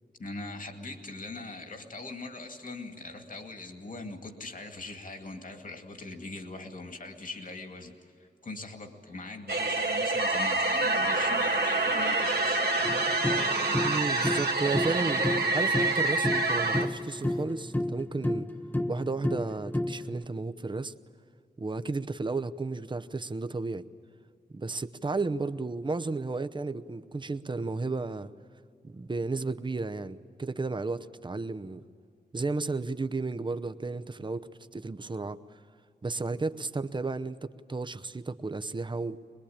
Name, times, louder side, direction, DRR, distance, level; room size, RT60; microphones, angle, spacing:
voice 1, 0.2-12.9, left 2 dB, 55° left, 4 dB, 2.4 m, -41 dB
sound 1, 9.5-16.9, right 2 dB, 80° right, 1.8 m, -27 dB
sound 2, 12.8-20.2, left 1 dB, 10° left, 0.6 m, -32 dB
voice 2, 13.8-15.3 15.5-18.5 18.9-20.9 21.6-23.8 24.5-28.3 28.8-31.8 32.3-35.4 36.0-39.2, right 3 dB, 30° right, 11 dB, 0.8 m, -33 dB
23.0 x 21.5 x 8.7 m, 2.4 s
wide cardioid pair, 80°, 16 cm